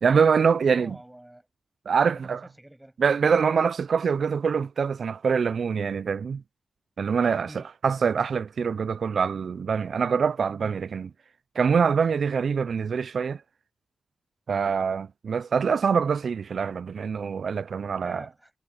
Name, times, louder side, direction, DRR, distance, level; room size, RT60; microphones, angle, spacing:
voice 1, 0.0-1.0 1.9-2.4 3.0-6.4 7.0-11.1 11.6-13.4 14.5-18.3, right 6 dB, 75° right, 0.3 m, -24 dB
voice 2, 0.7-1.5 2.1-3.0 7.5-7.7 18.0-18.5, right 1 dB, 10° right, 6.9 m, -46 dB
cardioid pair, 55°, 0 cm